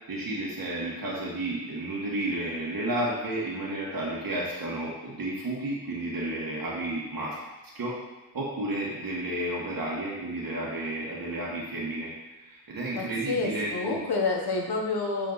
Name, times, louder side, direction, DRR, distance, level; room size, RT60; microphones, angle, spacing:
voice 1, 0.1-7.4 7.7-8.0 8.3-12.1 12.4-14.0, right 1 dB, 60° right, -5 dB, 1.6 m, -32 dB
voice 2, 12.9-15.3, left 3 dB, 75° left, 1 dB, 1.2 m, -29 dB
7.2 x 4.3 x 4.0 m, 1.1 s
wide cardioid pair, 85°, 39 cm